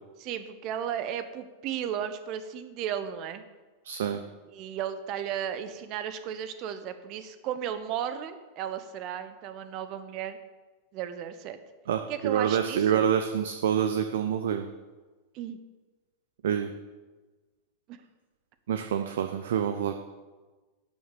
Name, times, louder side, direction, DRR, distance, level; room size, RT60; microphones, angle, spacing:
voice 1, 0.2-3.4 4.5-10.4 10.9-11.6 12.1-13.1 15.3-15.6 17.9-18.0, right 9 dB, 40° right, 11 dB, 1.1 m, -34 dB
voice 2, 3.8-4.2 11.9-14.7 16.4-16.7 18.7-20.0, right 9 dB, 60° right, 7 dB, 0.7 m, -27 dB
12.0 x 7.9 x 6.8 m, 1.3 s
figure-of-eight pair, 90°, 0 cm